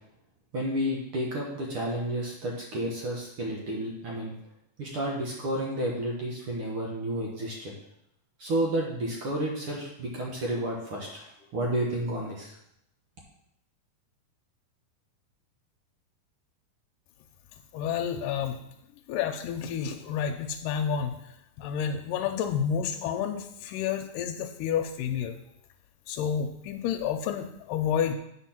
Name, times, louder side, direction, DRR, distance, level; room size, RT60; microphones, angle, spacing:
voice 1, 0.5-4.3 4.8-7.7 8.4-12.6, right 1 dB, 60° right, -2 dB, 1.6 m, -31 dB
voice 2, 17.7-18.6 19.1-25.4 26.1-28.2, left 8 dB, 90° left, 4 dB, 2.2 m, -30 dB
8.4 x 4.5 x 5.8 m, 0.77 s
omnidirectional pair, 3.9 m